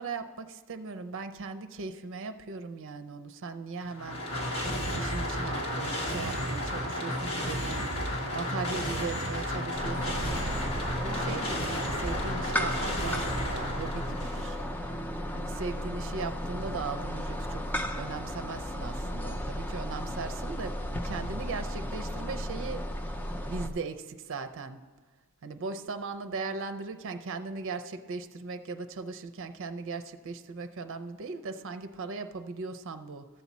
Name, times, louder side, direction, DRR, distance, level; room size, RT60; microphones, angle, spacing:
voice 1, 0.0-4.6 5.0-7.9 8.3-15.1 15.3-22.9 23.5-24.8 25.4-33.3, right 4 dB, 60° right, 10 dB, 0.6 m, -38 dB
sound 1, 3.8-14.6, equal, 75° left, 1.5 m, -32 dB
sound 2, 9.7-23.7, equal, 10° left, 0.5 m, -35 dB
13.5 x 7.2 x 4.1 m, 1.4 s
head